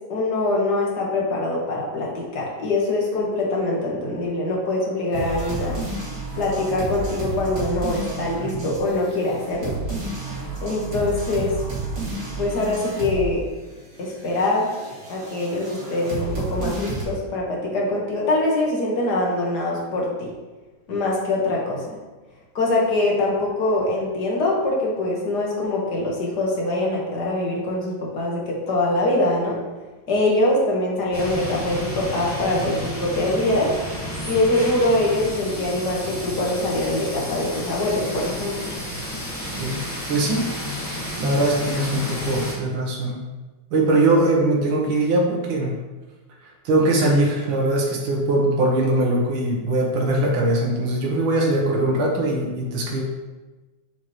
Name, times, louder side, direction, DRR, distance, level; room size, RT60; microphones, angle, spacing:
voice 1, 0.1-5.8 6.4-9.7 10.6-11.5 12.4-13.4 14.0-14.7 15.1-20.3 20.9-21.8 22.6-29.6 30.1-33.7 34.3-38.7, left 2 dB, 55° left, -3 dB, 1.9 m, -23 dB
sound 1, 5.1-13.3 13.6-17.0, right 2 dB, 60° right, 2.8 m, -31 dB
sound 2, 31.1-42.5, equal, 10° left, 1.5 m, -31 dB
voice 2, 40.1-40.5 41.2-43.2 43.7-45.7 46.4-53.0, right 2 dB, 80° right, -2 dB, 2.0 m, -21 dB
7.0 x 6.5 x 3.1 m, 1.2 s
omnidirectional pair, 2.2 m